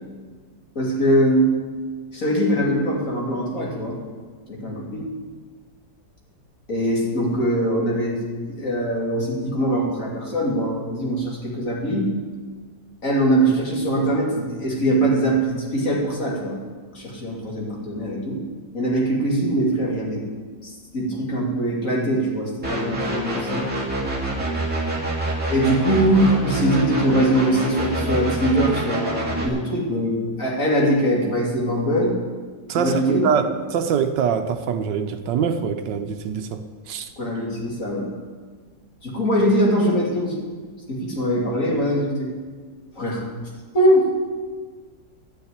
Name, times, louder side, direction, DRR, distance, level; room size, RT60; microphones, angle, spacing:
voice 1, 0.7-1.5 2.1-4.0 4.5-5.1 6.7-12.1 13.0-16.6 16.9-18.4 18.7-20.2 20.6-23.7 25.5-32.1 32.8-33.2 37.2-38.2 39.0-40.4 40.9-42.3 43.0-43.3 43.7-44.1, right 1 dB, 45° left, 3.0 m, -22 dB
sound 1, 22.6-29.5, right 1 dB, 5° right, 2.2 m, -26 dB
voice 2, 32.7-37.1, right 7 dB, 75° right, 1.5 m, -24 dB
12.0 x 6.8 x 9.7 m
omnidirectional pair, 2.0 m